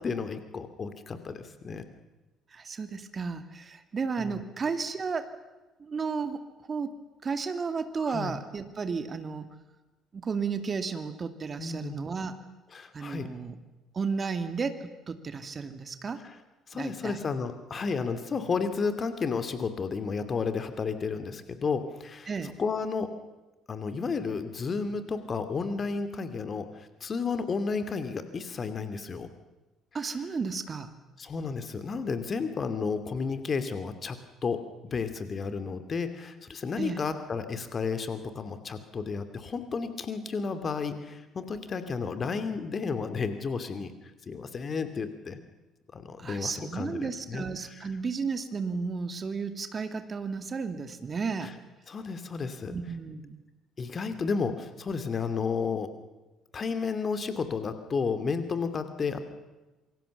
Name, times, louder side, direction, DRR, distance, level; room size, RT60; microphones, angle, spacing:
voice 1, 0.0-1.9 4.2-4.4 8.0-8.3 11.6-12.0 12.7-13.3 16.7-22.3 22.6-23.1 23.7-29.3 31.2-43.9 44.3-45.4 45.9-47.5 51.9-52.8 53.8-55.9 56.5-59.2, left 5 dB, 35° left, 9 dB, 2.7 m, -32 dB
voice 2, 2.5-5.4 5.8-9.5 10.1-12.4 12.9-13.6 13.9-16.2 16.7-17.2 22.3-22.6 29.9-30.9 36.8-37.0 46.2-51.5 52.7-53.4, right 5 dB, 35° right, 9 dB, 2.2 m, -33 dB
26.5 x 24.5 x 7.1 m, 1.1 s
figure-of-eight pair, 50°, 0 cm